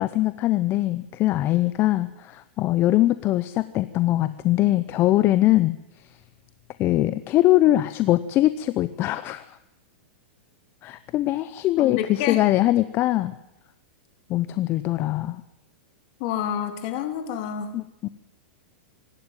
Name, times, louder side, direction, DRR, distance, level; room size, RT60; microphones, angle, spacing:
voice 1, 0.0-5.8 6.8-9.6 10.8-13.3 14.3-15.4 17.7-18.1, left 15 dB, 40° left, 14 dB, 0.8 m, -22 dB
voice 2, 11.8-12.4 16.2-17.7, left 10 dB, 55° left, 6 dB, 3.6 m, -28 dB
25.5 x 11.5 x 9.1 m, 0.87 s
hypercardioid pair, 115°, 6 cm